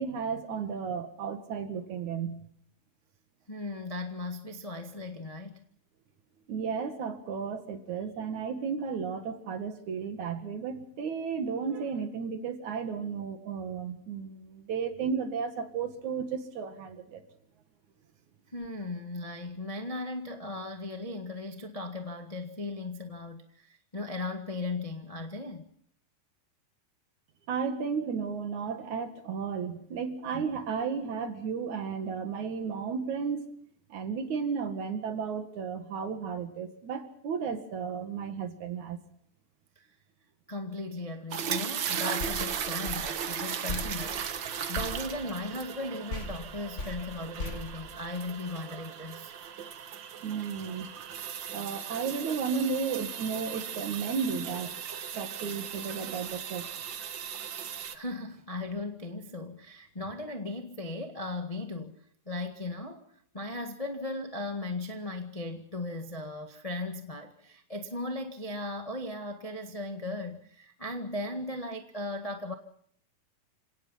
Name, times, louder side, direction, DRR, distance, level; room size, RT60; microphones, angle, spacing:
voice 1, 0.0-2.4 6.5-17.2 27.5-33.5 33.9-39.0 50.2-50.9 51.5-54.7 55.1-56.7, right 6 dB, 60° right, 3.1 m, -33 dB
voice 2, 3.5-5.6 18.5-25.7 40.5-49.3 57.9-61.9 62.3-63.0 63.3-72.5, left 2 dB, 65° left, 0.3 m, -37 dB
sound 1, 41.3-57.9, right 8 dB, 90° right, 1.0 m, -37 dB
sound 2, 42.2-45.8 46.1-48.6, left 2 dB, 45° left, 0.9 m, -40 dB
29.0 x 18.0 x 5.7 m
omnidirectional pair, 4.0 m